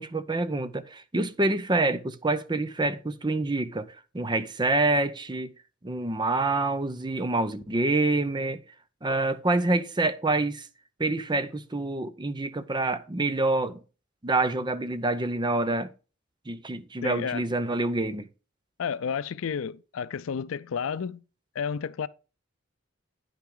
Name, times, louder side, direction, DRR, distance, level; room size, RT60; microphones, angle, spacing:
voice 1, 0.0-5.5 5.8-8.6 9.0-10.7 11.0-13.8 14.2-15.9 16.5-18.3, right 2 dB, 20° right, 0.7 m, -27 dB
voice 2, 17.0-17.4 18.8-21.2 21.6-22.1, left 6 dB, 80° left, 0.4 m, -31 dB
10.0 x 5.9 x 3.8 m
head